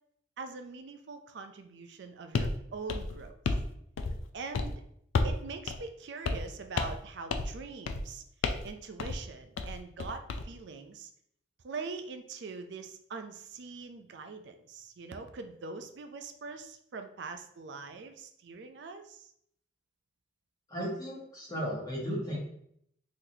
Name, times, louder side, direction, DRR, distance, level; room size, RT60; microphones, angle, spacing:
voice 1, 0.4-3.3 4.3-4.8 5.2-8.2 8.6-11.1 11.6-19.3, right 4 dB, 65° right, 7 dB, 0.4 m, -43 dB
sound 1, 2.3-2.6 2.9-3.7 4.0-4.3 4.5-4.7 5.1-5.4 5.7-5.8 6.2-6.5 6.8-7.0 7.3-7.6 7.9-8.1 8.4-8.7 9.0-9.2 9.6-10.4, left 3 dB, 85° left, 0.4 m, -31 dB
voice 2, 20.7-22.4, equal, 20° left, -5 dB, 1.0 m, -35 dB
3.9 x 3.0 x 2.7 m, 0.70 s
head